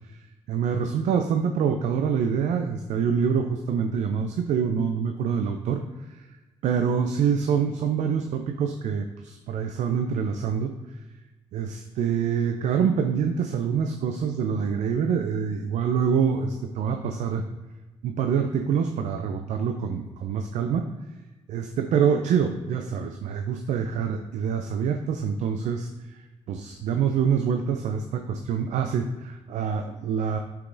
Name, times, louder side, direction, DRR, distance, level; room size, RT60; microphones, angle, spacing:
voice 1, 0.5-5.8 6.1-6.2 6.6-10.7 11.5-17.4 18.0-20.9 21.5-30.4, right 7 dB, 70° right, 6 dB, 0.5 m, -26 dB
6.6 x 5.7 x 2.6 m, 1.1 s
supercardioid pair, 55°, 13 cm